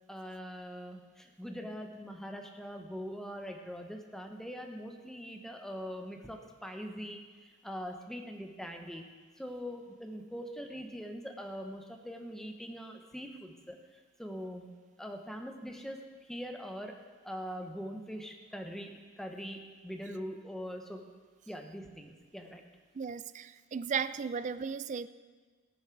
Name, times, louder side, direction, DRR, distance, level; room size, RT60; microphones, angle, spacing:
voice 1, 0.1-9.0 9.4-14.7 15.0-16.9 17.2-21.0 21.5-22.6, equal, ahead, 3 dB, 0.9 m, -42 dB
voice 2, 22.9-25.1, right 6 dB, 35° right, 15 dB, 0.3 m, -35 dB
18.0 x 7.2 x 4.6 m, 1.5 s
head